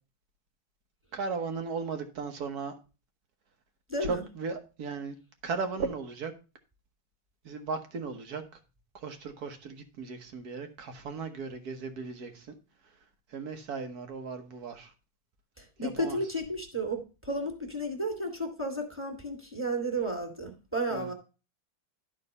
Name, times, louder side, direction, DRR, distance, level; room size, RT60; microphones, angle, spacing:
voice 1, 1.1-2.7 4.0-5.2 5.4-6.3 7.4-8.6 8.9-12.5 13.3-14.9 15.8-16.2 20.9-21.1, right 4 dB, 55° right, 1.5 m, -36 dB
voice 2, 3.9-4.2 15.6-21.1, right 1 dB, 5° right, 1.9 m, -33 dB
12.0 x 4.1 x 5.3 m
omnidirectional pair, 2.2 m